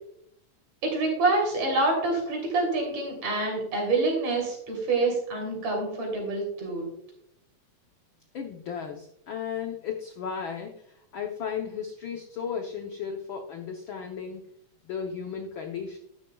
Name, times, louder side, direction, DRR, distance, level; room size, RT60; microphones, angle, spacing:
voice 1, 0.8-6.9, right 3 dB, 65° right, 0 dB, 4.4 m, -26 dB
voice 2, 8.3-10.7 11.1-14.4 14.8-16.0, left 7 dB, 80° left, 3 dB, 1.1 m, -35 dB
12.0 x 10.5 x 2.3 m, 0.73 s
omnidirectional pair, 3.3 m